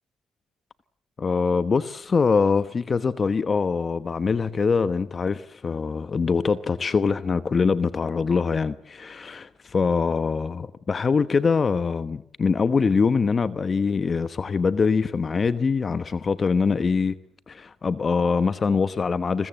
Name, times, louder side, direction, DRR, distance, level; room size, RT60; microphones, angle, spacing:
voice 1, 1.2-17.2 17.5-19.5, left 5 dB, 40° left, 1.0 m, -23 dB
29.5 x 21.5 x 7.7 m
cardioid pair, 90°, 0 cm